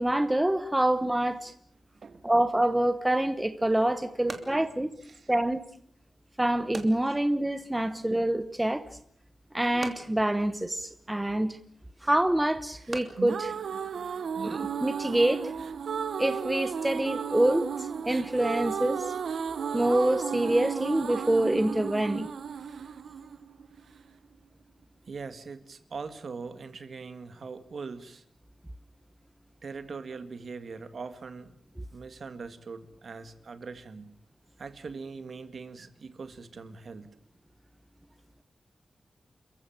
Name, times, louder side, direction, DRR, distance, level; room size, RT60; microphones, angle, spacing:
voice 1, 0.0-1.5 2.2-4.9 5.3-5.6 6.4-8.8 9.5-11.6 12.0-13.5 14.4-15.5 16.2-19.1 19.7-22.3, right 1 dB, 10° right, 1.1 m, -26 dB
sound 1, 3.6-14.6, right 3 dB, 30° right, 2.8 m, -48 dB
voice 2, 4.2-5.3 7.0-7.2 25.1-28.2 29.6-31.5 31.9-34.2 34.6-37.2, right 4 dB, 50° right, 2.0 m, -42 dB
sound 2, 12.9-24.0, right 6 dB, 80° right, 1.0 m, -34 dB
28.5 x 15.0 x 8.9 m
wide cardioid pair, 160°, 0 cm